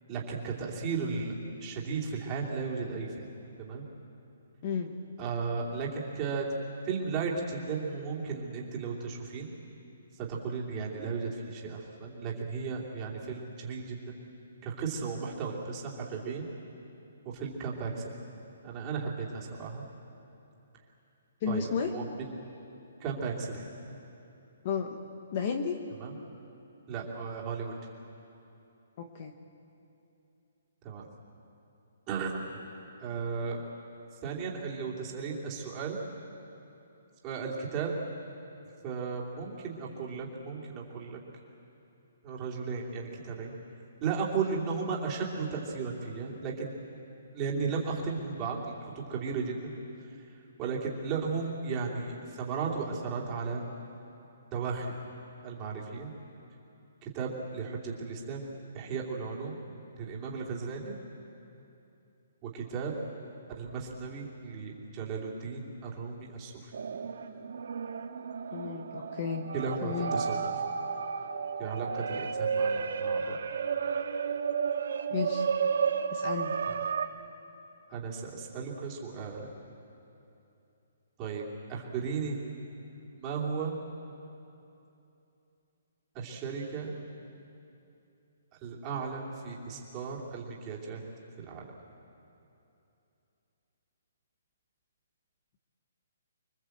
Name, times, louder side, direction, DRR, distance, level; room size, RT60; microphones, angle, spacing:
voice 1, 0.1-1.3 1.6-3.3 3.6-3.8 5.2-6.5 6.8-9.5 10.2-14.1 14.6-16.4 17.3-18.1 18.6-19.8 21.5-22.3 23.0-23.7 25.9-26.2 26.9-27.7 30.8-31.0 32.1-32.6 33.0-33.6 34.2-36.0 37.2-37.9 38.8-41.2 42.2-43.5 44.0-46.7 47.3-48.6 48.9-49.7 50.6-53.6 54.5-54.9 55.4-56.1 57.0-59.6 60.0-61.0 62.4-62.9 63.6-66.7 69.5-70.4 71.6-73.4 76.7-76.8 77.9-79.5 81.2-81.4 81.7-82.4 83.2-83.8 86.1-86.9 88.6-91.0 91.4-91.7, right 5 dB, 15° right, -3 dB, 2.8 m, -35 dB
voice 2, 4.6-4.9 21.4-21.9 24.6-25.0 25.3-25.8 29.0-29.3 68.5-69.4 69.8-70.2 75.1-75.5 76.1-76.6, left 6 dB, 25° left, 5 dB, 1.1 m, -32 dB
sound 1, 66.7-77.1, right 6 dB, 65° right, 1.7 m, -32 dB
25.5 x 23.5 x 7.9 m, 2.9 s
hypercardioid pair, 180°, 0 cm